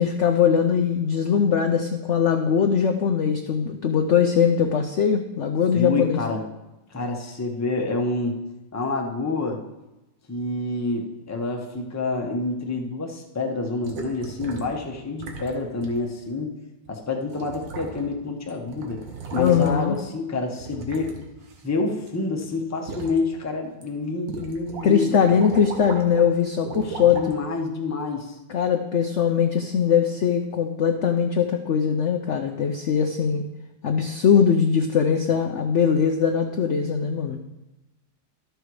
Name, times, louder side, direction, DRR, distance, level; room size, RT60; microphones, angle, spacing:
voice 1, 0.0-6.2 19.4-20.0 24.8-27.2 28.5-33.4 33.8-37.4, left 7 dB, 65° left, 5 dB, 0.7 m, -21 dB
voice 2, 5.7-6.4 6.9-8.4 8.7-9.6 10.3-16.5 16.9-19.0 19.3-21.1 21.6-25.4 26.8-28.3, left 3 dB, 15° left, 1 dB, 0.7 m, -28 dB
sound 1, 13.8-14.8 15.2-15.5 15.8-16.0 16.9-17.0 17.3-18.2 18.5-20.0 20.6-22.1 22.4-23.2 23.7-23.8 24.3-24.9 25.1-26.2 26.6-27.3 28.0-28.1, right 4 dB, 90° right, 1.9 m, -37 dB
12.0 x 6.6 x 4.7 m, 1.0 s
omnidirectional pair, 1.9 m